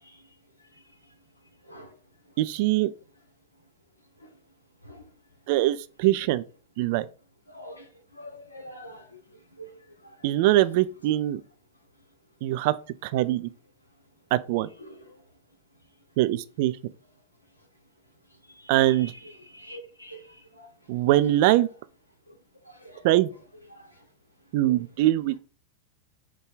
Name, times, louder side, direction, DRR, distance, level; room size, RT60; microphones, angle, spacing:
voice 1, 2.4-2.9 5.5-6.4 6.8-7.1 10.2-11.4 12.4-12.8 13.0-13.5 14.3-14.7 16.2-16.7 18.7-19.1 20.9-21.7 23.0-23.3 24.5-25.4, right 15 dB, 50° right, 0.3 m, -22 dB
voice 2, 7.5-7.9 8.2-9.2 9.6-9.7 14.8-14.9 18.8-18.9 19.5-20.2 20.6-20.7 22.7-23.0, equal, 85° left, 1.0 m, -44 dB
4.7 x 2.2 x 4.8 m
figure-of-eight pair, 90°, 0 cm